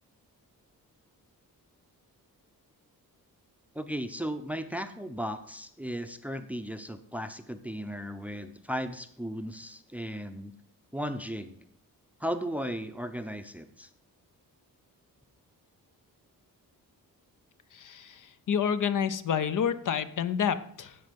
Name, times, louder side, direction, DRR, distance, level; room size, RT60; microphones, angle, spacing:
voice 1, 3.7-10.5 10.9-11.6 12.2-13.9, equal, 5° right, 10 dB, 0.6 m, -36 dB
voice 2, 17.7-21.0, left 7 dB, 60° left, 12 dB, 0.7 m, -29 dB
15.5 x 5.4 x 5.2 m, 0.68 s
wide cardioid pair, 155°, 36 cm